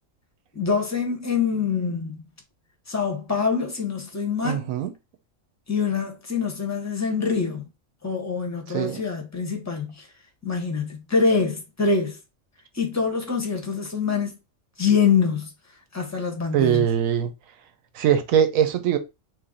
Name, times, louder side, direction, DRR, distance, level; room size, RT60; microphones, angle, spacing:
voice 1, 0.5-2.2 2.9-4.7 5.7-7.7 8.0-10.1 10.4-12.2 12.7-14.4 14.8-15.5 15.9-16.9, left 5 dB, 20° left, 0.5 m, -25 dB
voice 2, 4.4-4.9 8.7-9.0 16.5-17.3 17.9-19.0, right 9 dB, 85° right, 1.1 m, -21 dB
3.1 x 2.6 x 3.6 m
omnidirectional pair, 1.4 m